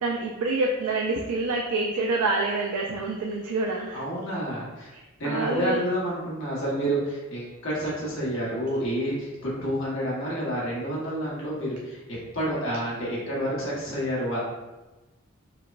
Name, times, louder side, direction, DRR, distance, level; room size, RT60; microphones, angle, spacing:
voice 1, 0.0-4.0 4.9-5.8, right 3 dB, 90° right, 0 dB, 0.4 m, -27 dB
voice 2, 3.9-4.9 5.2-14.4, equal, 60° left, -6 dB, 1.2 m, -29 dB
4.7 x 2.1 x 2.4 m, 1.1 s
head